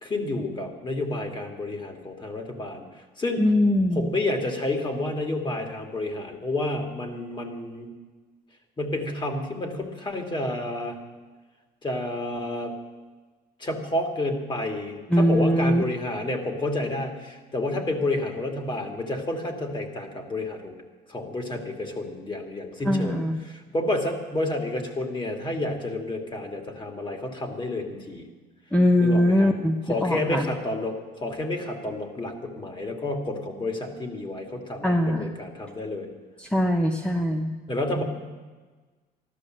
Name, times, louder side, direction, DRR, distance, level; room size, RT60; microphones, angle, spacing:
voice 1, 0.0-2.8 3.2-3.4 3.9-7.9 8.8-11.0 11.8-12.7 13.6-20.8 21.1-23.2 23.4-28.3 29.0-29.5 29.9-36.1 37.7-38.0, left 2 dB, 25° left, 4 dB, 2.5 m, -30 dB
voice 2, 3.4-4.1 15.1-15.8 22.8-23.4 28.7-30.5 34.8-35.3 36.4-37.5, left 1 dB, 5° left, 3 dB, 0.9 m, -22 dB
14.0 x 12.0 x 7.8 m, 1.3 s
cardioid pair, 110°, 17 cm